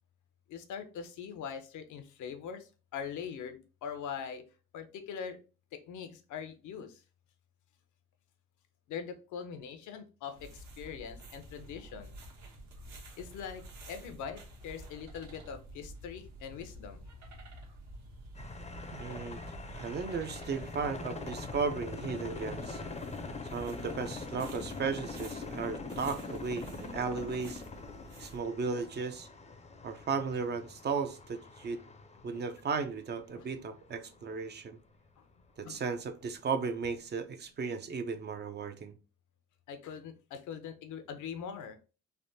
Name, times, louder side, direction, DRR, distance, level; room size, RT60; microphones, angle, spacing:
voice 1, 0.5-4.4 4.7-5.4 5.7-7.0 8.9-12.1 13.2-17.0 32.3-32.4 33.3-33.5 35.6-35.8 39.7-41.8, left 7 dB, 80° left, 0.6 m, -42 dB
sound 1, 10.3-28.4, right 1 dB, 65° right, 1.0 m, -50 dB
sound 2, 18.3-34.4 34.9-35.0 36.0-36.1 37.0-37.1, left 3 dB, 20° left, 0.5 m, -43 dB
voice 2, 18.9-19.4 19.7-22.8 23.5-27.6 28.2-29.3 29.8-31.8 32.2-34.8 35.6-38.9, right 5 dB, 35° right, 0.4 m, -35 dB
3.3 x 2.0 x 2.6 m
cardioid pair, 90°, 30 cm